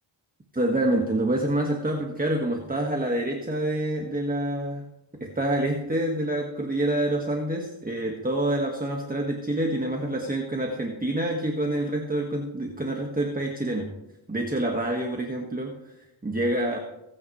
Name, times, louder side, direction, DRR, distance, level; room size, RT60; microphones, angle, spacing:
voice 1, 0.5-4.8 5.2-13.9 14.3-15.8 16.2-16.8, right 1 dB, 20° right, 1 dB, 1.7 m, -27 dB
24.5 x 9.7 x 3.2 m, 0.95 s
wide cardioid pair, 95°, 48 cm